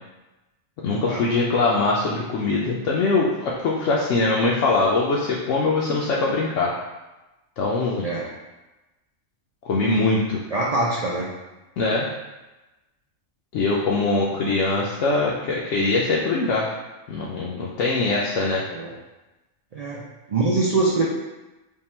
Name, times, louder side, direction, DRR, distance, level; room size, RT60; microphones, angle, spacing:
voice 1, 0.8-6.7 7.6-8.1 9.7-10.4 11.8-12.1 13.5-16.7 17.1-18.6, left 3 dB, 75° left, -4 dB, 0.9 m, -22 dB
voice 2, 10.5-11.3 14.4-14.5 18.7-18.9 19.7-21.0, right 3 dB, 75° right, -4 dB, 0.3 m, -24 dB
3.6 x 2.2 x 4.2 m, 1.1 s
omnidirectional pair, 1.3 m